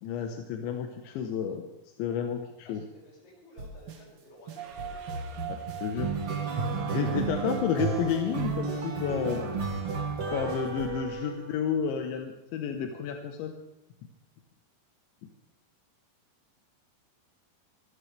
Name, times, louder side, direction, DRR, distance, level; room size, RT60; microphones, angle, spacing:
voice 1, 0.0-1.6 2.0-2.8 5.8-6.1 6.7-9.4 10.3-13.5, left 7 dB, 90° left, 4 dB, 3.5 m, -31 dB
voice 2, 2.6-6.1 11.0-11.3, equal, 60° left, -4 dB, 8.3 m, -55 dB
sound 1, 3.6-4.0 4.5-11.7, right 4 dB, 45° right, 2.3 m, -32 dB
sound 2, 4.6-10.6, right 8 dB, 65° right, 2.1 m, -43 dB
25.5 x 13.0 x 3.4 m, 0.97 s
omnidirectional pair, 5.1 m